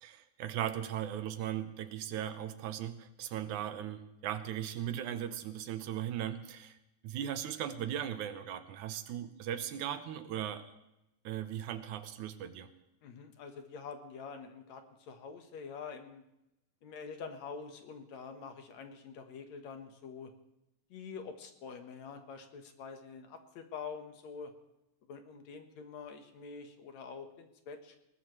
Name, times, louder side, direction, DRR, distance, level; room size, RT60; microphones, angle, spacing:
voice 1, 0.0-6.8 7.0-10.7 11.2-12.7, right 10 dB, 80° right, 10 dB, 2.3 m, -38 dB
voice 2, 13.0-16.2 16.8-20.3 20.9-24.5 25.1-28.0, left 5 dB, 70° left, 6 dB, 2.5 m, -46 dB
20.5 x 19.0 x 3.2 m, 0.89 s
omnidirectional pair, 3.5 m